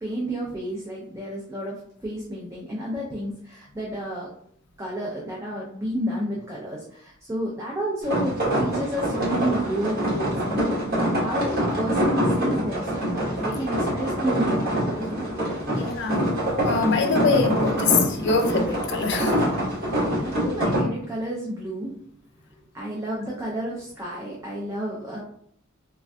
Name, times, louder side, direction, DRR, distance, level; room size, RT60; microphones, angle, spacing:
voice 1, 0.0-4.3 4.8-10.6 11.1-13.1 13.4-15.3 20.2-21.9 22.7-25.2, right 1 dB, 15° right, -5 dB, 0.5 m, -31 dB
sound 1, 8.0-20.8, equal, 50° right, 1.1 m, -25 dB
voice 2, 13.5-13.8 15.7-16.2 16.6-19.3, left 4 dB, 55° left, 3 dB, 0.4 m, -24 dB
3.3 x 2.5 x 2.3 m, 0.65 s
head